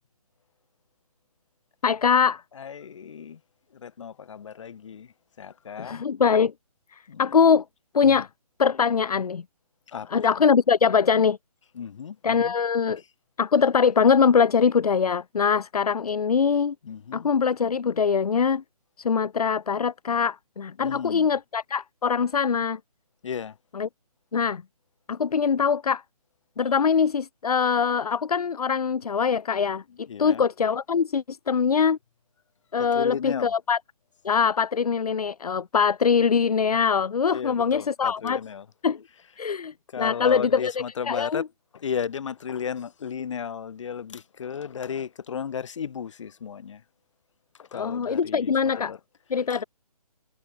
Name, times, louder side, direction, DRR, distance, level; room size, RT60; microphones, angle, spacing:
voice 1, 1.8-2.4 5.8-6.5 6.9-7.6 7.9-8.3 8.6-9.4 10.1-11.4 12.2-13.0 13.4-16.7 17.1-18.6 19.0-22.8 23.7-23.9 24.3-24.6 25.1-26.0 26.6-32.0 32.7-33.8 34.2-38.4 38.8-39.0 39.4-40.7 41.0-41.5 47.7-48.9 49.3-49.6, left 6 dB, 70° left, 0.9 m, -23 dB
voice 2, 2.6-3.4 3.7-5.1 5.4-6.0 7.1-7.2 8.0-8.2 9.9-10.1 11.8-12.5 16.8-17.3 20.8-21.3 23.2-23.5 30.1-30.4 32.8-33.5 37.3-38.6 39.9-41.4 41.7-46.8 47.6-49.0, left 7 dB, 50° left, 2.7 m, -34 dB
figure-of-eight pair, 150°, 20 cm